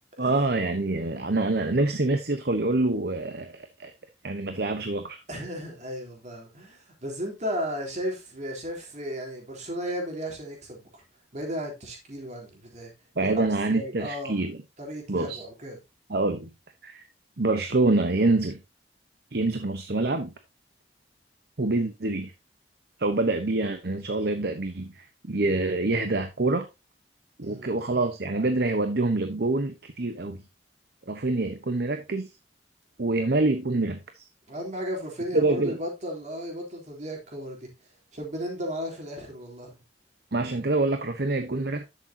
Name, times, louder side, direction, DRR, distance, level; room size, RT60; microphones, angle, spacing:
voice 1, 0.2-3.9 4.2-5.2 13.2-14.6 15.1-15.4 16.1-16.5 16.8-17.0 17.4-18.6 19.3-20.3 21.6-22.3 23.0-26.7 27.4-30.4 31.1-32.3 33.0-34.2 35.3-35.8 40.3-41.9, right 2 dB, 65° right, 0.9 m, -26 dB
voice 2, 5.3-11.0 11.3-12.9 13.2-14.4 14.8-15.8 27.4-27.7 34.5-37.7 38.1-39.8, equal, 40° right, 3.6 m, -35 dB
11.5 x 6.8 x 2.8 m
head